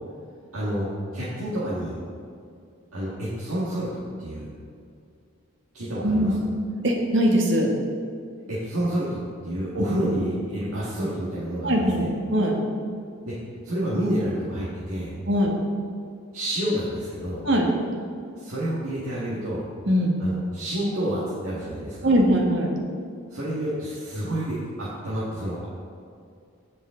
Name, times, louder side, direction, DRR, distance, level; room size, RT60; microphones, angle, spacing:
voice 1, 0.5-2.0 2.9-4.5 5.7-6.3 8.5-12.1 13.3-13.4 13.6-15.1 16.3-17.4 18.4-19.7 20.2-22.1 23.3-25.6, right 1 dB, 85° right, -8 dB, 1.9 m, -29 dB
voice 2, 6.0-6.3 6.8-7.7 11.6-12.6 15.3-15.6 17.4-17.7 19.9-20.1 22.0-22.7, equal, 60° right, 0 dB, 1.5 m, -21 dB
16.0 x 5.5 x 3.8 m, 2.4 s
head